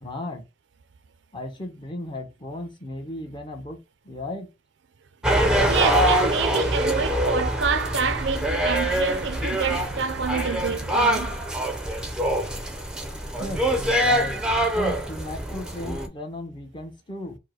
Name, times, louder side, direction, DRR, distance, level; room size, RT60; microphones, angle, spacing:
voice 1, 0.0-0.5 1.3-4.5 13.4-14.4 14.7-17.4, left 2 dB, 25° left, 0.9 m, -35 dB
sound 1, 5.2-16.1, equal, 5° right, 0.6 m, -24 dB
voice 2, 5.7-11.4, right 5 dB, 65° right, 0.5 m, -27 dB
4.5 x 2.1 x 4.5 m
head